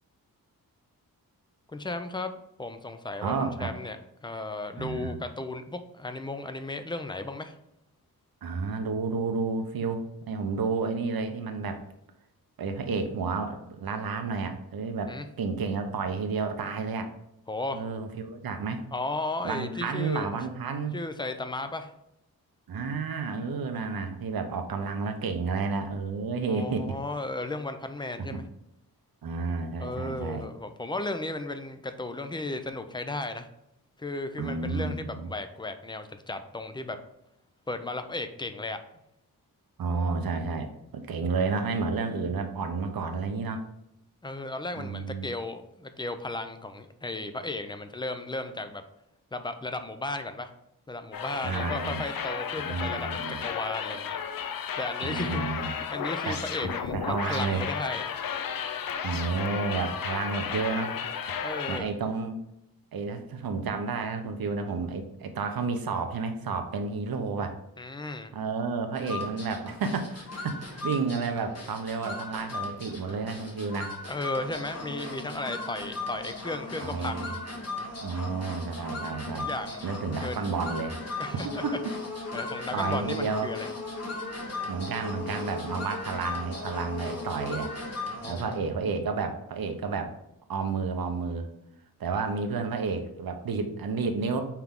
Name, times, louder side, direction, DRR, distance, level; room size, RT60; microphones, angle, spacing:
voice 1, 1.7-2.3 2.6-7.5 15.1-15.3 17.5-17.8 18.9-20.4 20.9-21.9 26.5-28.4 29.8-33.5 34.0-37.0 37.7-38.8 44.2-48.8 49.3-50.5 50.9-58.2 61.4-61.9 67.8-68.3 74.1-77.3 79.4-79.9 80.2-80.5 81.2-81.6 82.3-83.7 88.1-88.9, left 2 dB, 15° left, 9 dB, 0.4 m, -35 dB
voice 2, 3.2-3.7 4.8-5.2 8.4-11.8 12.6-17.1 17.7-18.8 19.4-21.0 22.7-27.0 28.3-28.4 29.2-30.5 34.4-35.3 39.8-43.6 44.8-45.3 51.4-52.0 52.6-53.4 55.0-55.7 56.3-57.6 59.0-61.0 61.3-61.4 61.7-62.4 62.9-67.6 68.3-73.9 76.8-77.4 78.0-79.5 79.8-80.9 81.4-81.9 82.7-83.5 84.7-87.7 88.2-90.1 90.5-91.5 92.0-94.4, right 4 dB, 70° right, 6 dB, 0.8 m, -31 dB
sound 1, 51.1-61.8, left 7 dB, 65° left, 0.6 m, -33 dB
sound 2, 69.0-88.7, left 3 dB, 45° left, 1.3 m, -37 dB
5.8 x 4.6 x 3.6 m, 0.81 s
wide cardioid pair, 135°, 37 cm